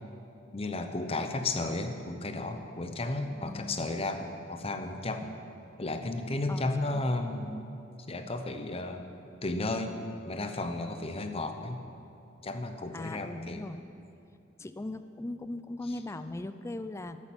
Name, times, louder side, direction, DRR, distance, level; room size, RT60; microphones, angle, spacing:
voice 1, 0.5-5.3 5.8-7.6 8.1-9.1 9.4-10.0 10.3-11.8 12.4-13.6, left 2 dB, 30° left, 7 dB, 0.8 m, -33 dB
voice 2, 3.3-3.8 6.5-6.7 6.9-7.2 12.9-13.8 14.6-17.2, left 2 dB, 15° left, 11 dB, 0.4 m, -39 dB
12.0 x 8.8 x 7.3 m, 2.7 s
head